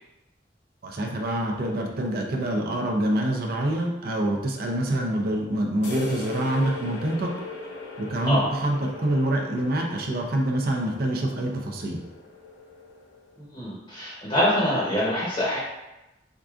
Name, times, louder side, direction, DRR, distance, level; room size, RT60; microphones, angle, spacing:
voice 1, 0.8-7.3 8.0-12.0, right 1 dB, 55° right, 0 dB, 0.5 m, -26 dB
sound 1, 5.8-13.4, left 2 dB, 85° left, 0.7 m, -39 dB
voice 2, 13.4-15.6, left 1 dB, 25° left, -7 dB, 0.8 m, -25 dB
4.6 x 2.5 x 2.4 m, 0.98 s
head